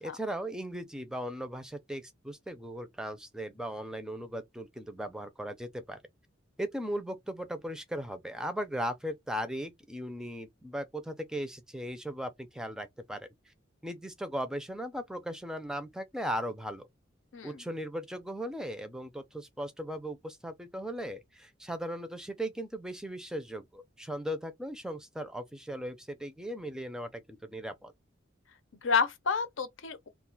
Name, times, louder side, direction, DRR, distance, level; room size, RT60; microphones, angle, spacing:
voice 1, 0.0-6.0 6.6-13.5 13.8-16.9 17.4-27.9, equal, 5° right, 0.4 m, -38 dB
voice 2, 17.3-17.6 28.8-30.1, left 5 dB, 80° left, 0.7 m, -30 dB
2.4 x 2.3 x 3.8 m
head